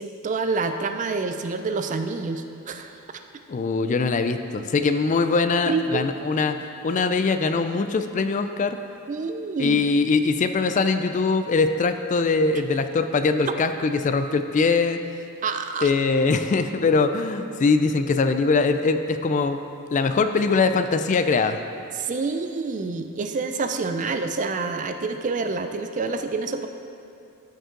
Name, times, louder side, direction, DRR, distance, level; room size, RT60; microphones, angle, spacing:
voice 1, 0.0-3.0 5.7-6.0 9.1-9.8 15.4-15.9 22.0-26.7, right 4 dB, 35° right, 7 dB, 0.4 m, -27 dB
voice 2, 3.5-8.8 9.6-15.0 15.8-19.6 19.9-21.6, left 4 dB, 35° left, 9 dB, 0.3 m, -22 dB
13.5 x 5.4 x 3.8 m, 2.6 s
head